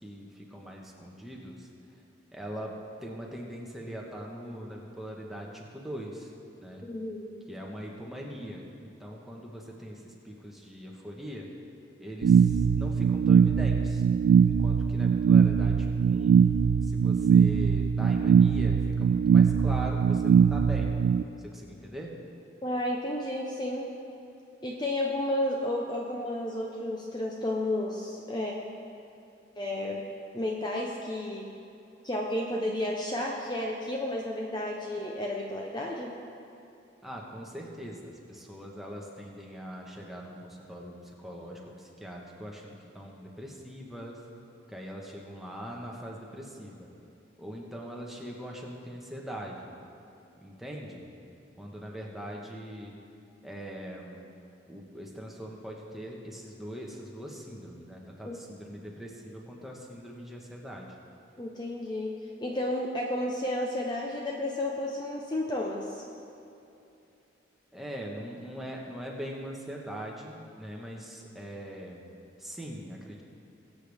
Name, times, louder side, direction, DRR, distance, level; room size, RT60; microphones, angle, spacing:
voice 1, 0.0-1.7 2.3-6.3 6.6-6.8 7.5-11.5 12.0-14.0 14.4-16.3 16.8-20.9 21.4-22.1 37.0-44.2 44.7-46.9 47.4-49.7 50.4-51.1 51.6-52.9 53.4-54.2 54.7-60.9 67.7-72.0 72.4-73.2, equal, ahead, -2 dB, 1.3 m, -41 dB
voice 2, 6.8-7.3 22.6-23.9 24.6-28.5 29.6-30.0 30.3-31.5 32.0-36.1 58.2-58.4 61.4-62.1 62.4-66.0, left 1 dB, 25° left, -2 dB, 0.8 m, -32 dB
sound 1, 12.2-21.2, right 6 dB, 85° right, 0.3 m, -21 dB
21.0 x 8.1 x 3.5 m, 2.7 s
head